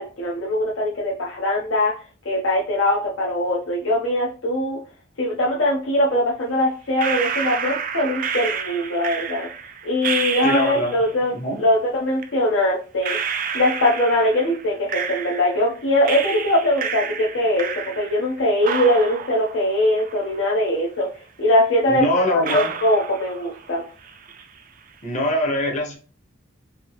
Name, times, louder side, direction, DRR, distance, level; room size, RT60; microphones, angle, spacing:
voice 1, 0.0-1.9 2.2-4.8 5.2-9.5 9.8-13.2 13.5-17.7 18.0-21.1 21.4-22.0 22.3-23.8, left 1 dB, 75° left, -4 dB, 0.8 m, -21 dB
sound 1, 7.0-11.1 12.2-12.3 13.0-15.7 16.0-18.3 18.6-20.7 21.0-21.1 21.8-21.9 22.4-23.8 24.0-24.6, right 7 dB, 45° right, 0.4 m, -29 dB
voice 2, 10.4-10.9 11.3-11.6 21.9-22.7 25.0-26.0, left 1 dB, 40° left, 0 dB, 0.9 m, -22 dB
3.5 x 2.7 x 2.9 m, 0.37 s
head